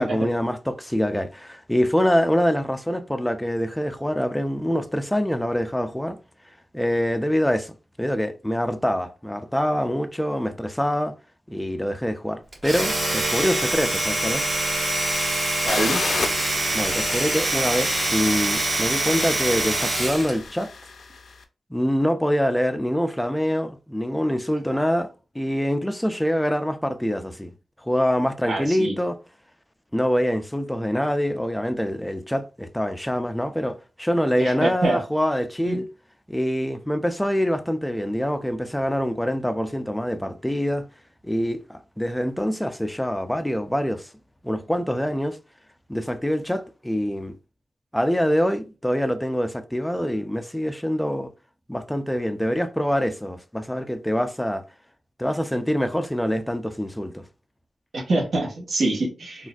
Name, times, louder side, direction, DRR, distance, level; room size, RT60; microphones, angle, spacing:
voice 1, 0.0-6.2 6.7-7.7 8.0-11.1 11.5-14.5 16.7-20.7 21.7-27.5 27.8-29.2 29.9-35.9 36.3-40.9 41.2-44.1 44.4-45.4 45.9-47.3 47.9-51.3 51.7-54.6 55.2-57.2, equal, 5° left, 0.4 m, -25 dB
Domestic sounds home sounds, 12.5-20.4, right 1 dB, 45° right, 1.6 m, -24 dB
voice 2, 15.6-16.0 28.5-28.9 34.4-35.0 35.6-35.8 57.9-59.5, right 2 dB, 65° right, 1.2 m, -25 dB
sound 1, 15.7-21.3, left 4 dB, 65° left, 0.4 m, -34 dB
3.9 x 2.4 x 2.4 m
cardioid pair, 80°, 0 cm